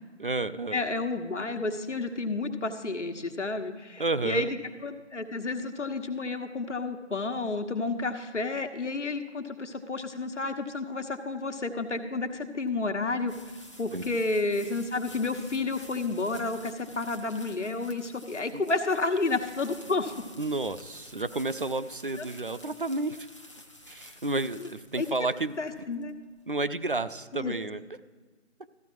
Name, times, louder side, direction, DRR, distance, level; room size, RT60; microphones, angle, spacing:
voice 1, 0.2-0.8 4.0-4.5 13.9-14.0 18.5-18.6 20.4-23.3 23.9-25.6 26.5-27.8, right 2 dB, 50° right, 13 dB, 0.4 m, -31 dB
voice 2, 0.7-13.3 13.8-20.3 22.2-22.3 24.6-24.7 25.0-25.1 25.6-26.1 27.3-27.5, left 3 dB, 75° left, 7 dB, 1.3 m, -31 dB
sound 1, 12.1-27.0, left 1 dB, 25° left, 0.7 m, -51 dB
14.0 x 8.3 x 4.6 m, 1.4 s
figure-of-eight pair, 170°, 36 cm